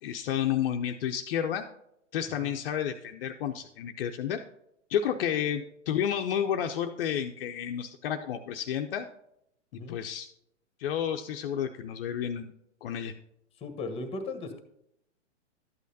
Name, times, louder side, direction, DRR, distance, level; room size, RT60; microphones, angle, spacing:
voice 1, 0.0-1.7 2.1-4.4 4.9-9.1 9.9-10.3 10.8-12.5 12.8-13.1, left 9 dB, 50° left, 5 dB, 0.6 m, -31 dB
voice 2, 13.6-14.6, left 3 dB, 15° left, 8 dB, 1.1 m, -37 dB
12.5 x 8.3 x 2.7 m, 0.77 s
hypercardioid pair, 110°, 36 cm